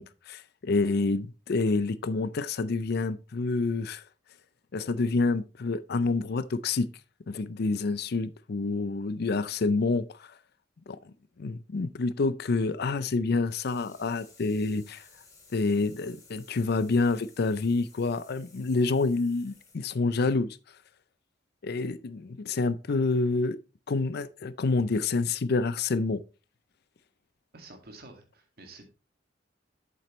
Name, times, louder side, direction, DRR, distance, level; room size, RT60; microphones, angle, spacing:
voice 1, 0.0-4.0 4.7-6.9 7.3-10.3 10.9-11.0 11.4-15.0 15.5-20.6 21.6-23.6 23.9-26.2, left 3 dB, 60° left, 0.5 m, -28 dB
sound 1, 13.5-19.8, left 4 dB, 20° left, 2.6 m, -57 dB
voice 2, 27.5-28.8, right 2 dB, 55° right, 2.0 m, -49 dB
8.2 x 7.4 x 3.1 m
head